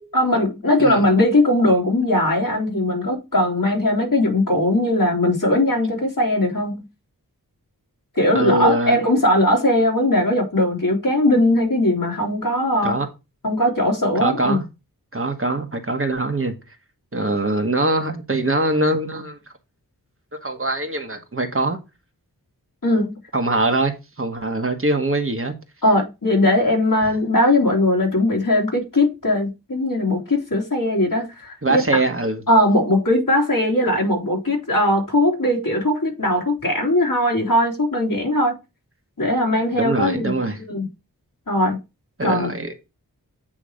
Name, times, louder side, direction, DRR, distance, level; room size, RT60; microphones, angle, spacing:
voice 1, 0.1-6.9 8.2-13.0 13.4-14.6 22.8-23.2 25.8-32.0 32.5-38.5 39.2-40.3 40.7-40.9 41.5-41.8 42.2-42.5, left 1 dB, 60° left, 3.7 m, -19 dB
voice 2, 8.3-9.0 12.8-13.1 14.1-14.6 15.1-16.5 17.1-19.4 20.4-21.8 23.3-23.9 24.2-25.5 31.6-32.4 39.7-40.6 42.2-42.9, right 2 dB, 35° right, 1.3 m, -22 dB
8.7 x 3.1 x 6.3 m
wide cardioid pair, 65°, 36 cm